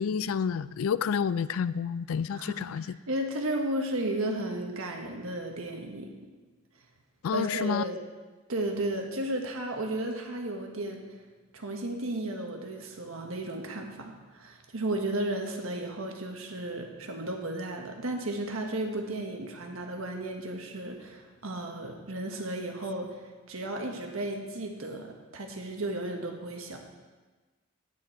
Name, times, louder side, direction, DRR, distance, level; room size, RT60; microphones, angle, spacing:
voice 1, 0.0-2.8 7.2-7.8, left 6 dB, 85° left, 17 dB, 0.3 m, -29 dB
voice 2, 2.4-6.1 7.3-8.0 8.5-11.0 11.5-23.1 23.5-26.8, right 1 dB, 85° right, 2 dB, 1.4 m, -34 dB
9.4 x 9.3 x 4.4 m, 1.3 s
head